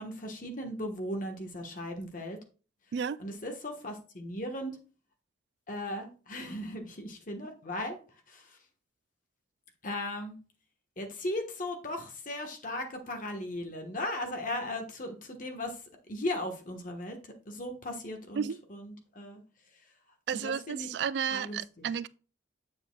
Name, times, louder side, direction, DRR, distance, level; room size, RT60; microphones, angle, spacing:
voice 1, 0.0-2.4 3.2-4.7 5.7-8.0 8.3-8.6 9.8-10.4 11.0-15.8 16.1-19.4 20.3-20.9 21.3-21.9, left 1 dB, 45° left, 1.3 m, -37 dB
voice 2, 20.3-22.1, right 7 dB, 70° right, 0.3 m, -32 dB
7.6 x 7.0 x 2.3 m
head